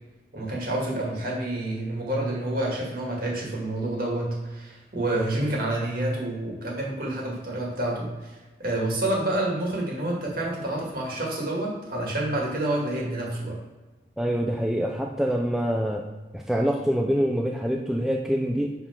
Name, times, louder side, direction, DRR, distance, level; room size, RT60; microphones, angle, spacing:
voice 1, 0.3-8.3 8.6-13.6, right 1 dB, 50° right, -2 dB, 2.0 m, -28 dB
voice 2, 14.2-16.0 16.3-18.7, equal, ahead, 1 dB, 0.3 m, -25 dB
5.7 x 4.4 x 5.8 m, 1.2 s
head